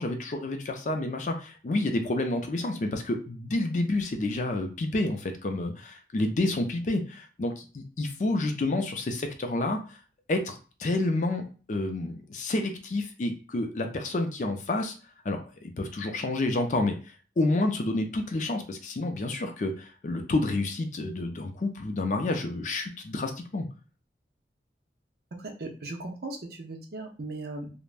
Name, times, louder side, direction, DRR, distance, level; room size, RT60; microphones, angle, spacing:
voice 1, 0.0-9.8 10.3-14.9 15.2-16.9 17.4-23.7, left 2 dB, 45° left, 5 dB, 0.4 m, -29 dB
voice 2, 25.6-27.7, right 2 dB, 60° right, 2 dB, 0.6 m, -37 dB
3.3 x 2.1 x 2.4 m, 0.37 s
head